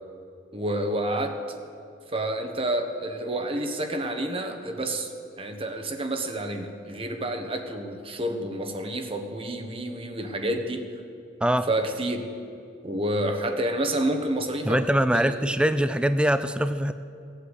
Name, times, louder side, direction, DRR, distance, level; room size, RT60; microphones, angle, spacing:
voice 1, 0.5-1.4 2.1-5.1 5.4-10.8 11.7-12.3 12.8-14.8 15.1-15.3, right 1 dB, 30° right, 5 dB, 1.2 m, -29 dB
voice 2, 14.6-16.9, right 1 dB, 5° right, 11 dB, 0.3 m, -23 dB
17.5 x 8.4 x 8.2 m, 2.7 s
head